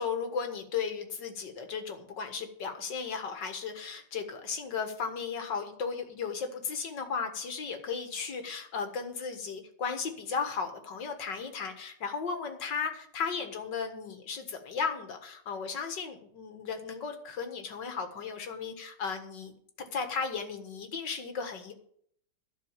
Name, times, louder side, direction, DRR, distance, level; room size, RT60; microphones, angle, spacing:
voice 1, 0.0-21.7, left 5 dB, 75° left, 6 dB, 2.3 m, -35 dB
12.0 x 6.2 x 8.9 m, 0.64 s
omnidirectional pair, 1.9 m